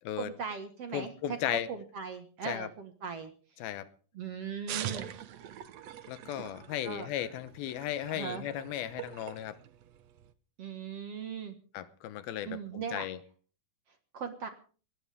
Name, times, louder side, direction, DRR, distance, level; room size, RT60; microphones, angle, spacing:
voice 1, 0.2-3.3 4.1-5.1 6.8-7.1 8.1-8.4 10.6-11.6 12.5-13.1 14.1-14.5, right 6 dB, 50° right, 7 dB, 2.2 m, -39 dB
voice 2, 0.9-1.7 2.5-2.7 3.6-3.9 6.1-9.6 11.7-13.2, left 11 dB, 80° left, 13 dB, 2.9 m, -36 dB
sound 1, 4.7-10.3, right 11 dB, 70° right, 1.7 m, -43 dB
20.5 x 18.0 x 3.6 m, 0.41 s
omnidirectional pair, 4.2 m